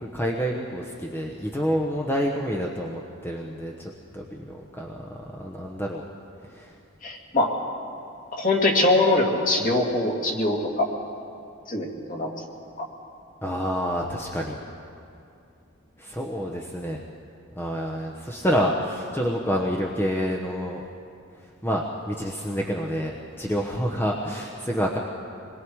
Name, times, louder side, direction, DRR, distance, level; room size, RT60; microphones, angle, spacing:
voice 1, 0.0-6.1 6.5-6.7 13.4-14.6 16.0-17.0 17.6-20.8 21.6-25.0, equal, 10° left, -1 dB, 1.0 m, -28 dB
voice 2, 7.0-7.5 8.4-10.9 11.7-12.3 12.8-12.9, left 2 dB, 40° left, -1 dB, 2.6 m, -23 dB
26.0 x 21.5 x 4.8 m, 2.5 s
head